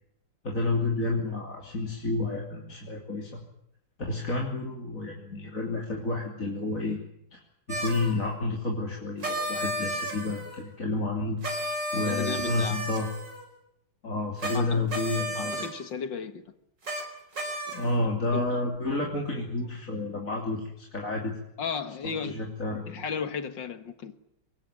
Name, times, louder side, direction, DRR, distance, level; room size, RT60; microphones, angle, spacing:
voice 1, 0.4-3.4 4.1-7.0 7.3-7.4 7.7-11.4 11.9-13.1 14.0-15.7 17.7-21.4 22.0-23.0, left 2 dB, 45° left, 3.5 m, -30 dB
sound 1, 7.7-8.1 9.2-10.6 11.4-13.5 14.4-14.6 14.9-15.7 16.8-17.0 17.3-18.0, right 1 dB, 65° right, 6.3 m, -33 dB
voice 2, 12.0-12.8 14.5-14.9 15.4-16.4 17.7-17.8 18.3-18.4 21.6-22.4 22.7-24.2, left 6 dB, 70° left, 2.3 m, -35 dB
25.0 x 21.0 x 9.1 m
omnidirectional pair, 2.1 m